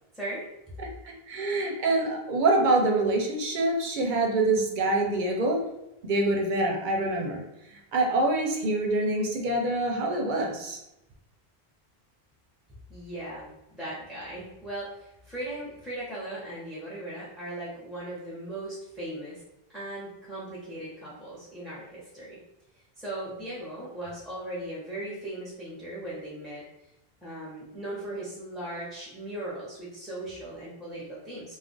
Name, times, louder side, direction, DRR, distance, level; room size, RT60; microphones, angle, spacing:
voice 1, 0.1-0.5 12.9-19.4 19.7-22.4 23.0-26.6 27.2-31.6, right 1 dB, ahead, -8 dB, 0.5 m, -38 dB
voice 2, 1.0-5.6 6.0-7.4 7.7-10.8, right 2 dB, 60° right, 1 dB, 0.6 m, -25 dB
2.4 x 2.1 x 3.7 m, 0.90 s
omnidirectional pair, 1.0 m